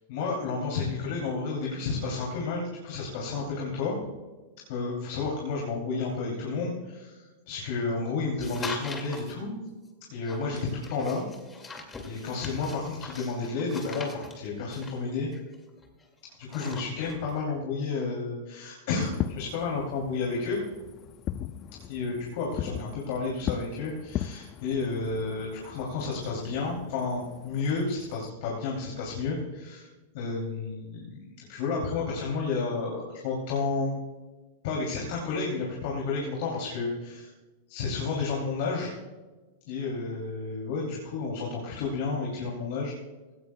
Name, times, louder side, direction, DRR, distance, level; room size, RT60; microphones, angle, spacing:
voice 1, 0.1-4.0 4.7-9.6 10.1-11.3 11.6-11.8 12.1-15.3 16.4-20.6 21.8-29.9 30.1-33.9 34.6-37.3 37.7-38.9 39.6-42.9, left 4 dB, 60° left, -2 dB, 2.8 m, -31 dB
sound 1, 8.4-9.3 10.2-16.0 16.3-17.3, left 3 dB, 20° left, 2.2 m, -42 dB
Fireworks, 19.0-28.3, left 11 dB, 40° left, 0.5 m, -38 dB
16.5 x 15.5 x 2.3 m, 1.2 s
hypercardioid pair, 110°, 0 cm